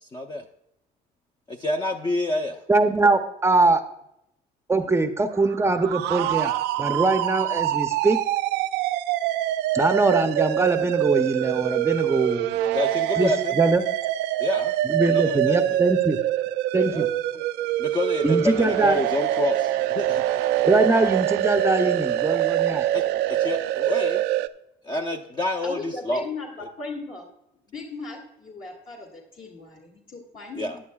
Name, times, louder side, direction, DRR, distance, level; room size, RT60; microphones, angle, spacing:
voice 1, 0.0-0.4 1.5-2.6 12.7-13.6 14.4-15.8 16.9-17.1 17.8-20.2 22.9-23.0 23.3-24.2 24.8-26.2 26.6-26.7 30.5-30.8, left 1 dB, 25° left, 4 dB, 0.6 m, -28 dB
voice 2, 2.7-3.8 4.7-8.2 9.7-12.5 13.2-13.3 13.6-13.8 14.8-16.2 16.7-17.1 18.2-19.0 20.6-22.9, right 3 dB, 15° right, 8 dB, 0.6 m, -22 dB
sound 1, 5.4-24.5, right 13 dB, 85° right, 0.4 m, -25 dB
voice 3, 25.6-27.2 27.7-30.6, left 3 dB, 50° left, -1 dB, 2.2 m, -37 dB
14.0 x 9.9 x 2.3 m, 0.81 s
cardioid pair, 110°, 17 cm